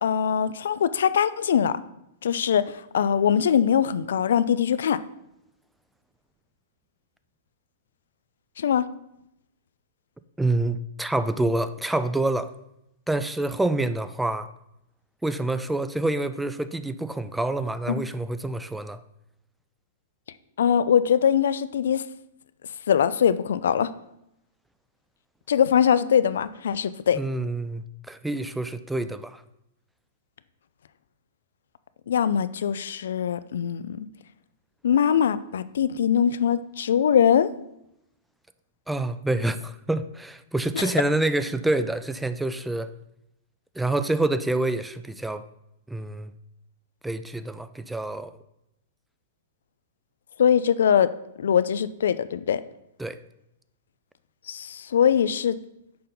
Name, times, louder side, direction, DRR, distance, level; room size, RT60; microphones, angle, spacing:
voice 1, 0.0-1.8 2.2-5.0 8.6-8.8 17.9-18.0 20.6-22.0 22.9-23.9 25.5-27.2 32.1-34.1 34.8-37.5 40.8-40.9 50.4-51.1 51.4-52.6 54.5-55.6, left 8 dB, 80° left, 15 dB, 0.4 m, -22 dB
voice 2, 10.4-12.5 13.1-14.5 15.2-19.0 27.2-29.4 38.9-42.9 43.8-45.4 45.9-46.3 47.0-48.3 53.0-53.2, right 2 dB, 5° right, 12 dB, 0.3 m, -27 dB
6.6 x 5.2 x 3.9 m, 0.82 s
hypercardioid pair, 145°, 0 cm